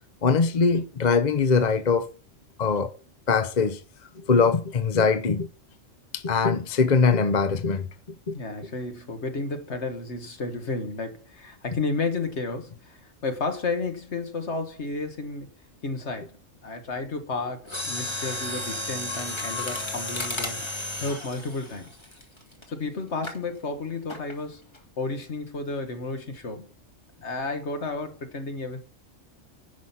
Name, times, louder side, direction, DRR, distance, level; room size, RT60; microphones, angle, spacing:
voice 1, 0.2-2.1 2.6-2.9 3.3-3.8 4.2-5.5 6.1-7.9 8.3-8.4, left 5 dB, 40° left, 0.9 m, -22 dB
voice 2, 8.3-15.5 15.8-16.3 16.6-20.6 21.0-21.9 22.7-24.7 25.0-26.7 27.2-28.8, left 3 dB, 60° left, 1.8 m, -32 dB
Mechanisms, 17.6-22.6 23.2-23.4 24.1-24.4 24.7-24.8, left 2 dB, 20° left, 1.9 m, -33 dB
10.5 x 6.2 x 5.8 m
omnidirectional pair, 1.3 m